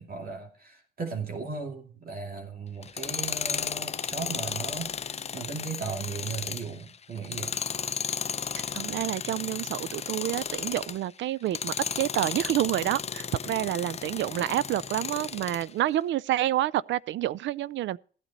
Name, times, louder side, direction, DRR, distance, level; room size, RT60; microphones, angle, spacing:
voice 1, 0.0-7.6 13.6-13.7, right 5 dB, 50° right, 2.5 m, -37 dB
Tools, 2.8-11.0 11.5-15.7, left 6 dB, 35° left, 0.6 m, -34 dB
voice 2, 8.7-18.0, right 13 dB, 70° right, 0.4 m, -28 dB
15.0 x 9.0 x 4.1 m
cardioid pair, 90°, 20 cm